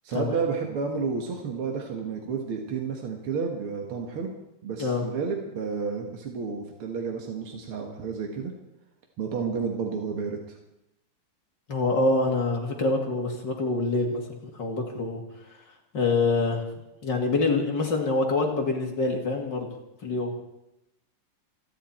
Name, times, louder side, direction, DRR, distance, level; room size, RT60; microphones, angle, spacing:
voice 1, 0.0-4.3 4.6-8.5 9.2-10.6, right 5 dB, 75° right, 2 dB, 2.5 m, -31 dB
voice 2, 11.7-15.2 15.9-16.6 17.0-19.7 20.0-20.3, left 3 dB, 55° left, 1 dB, 3.0 m, -25 dB
29.0 x 10.5 x 4.4 m, 0.89 s
omnidirectional pair, 2.4 m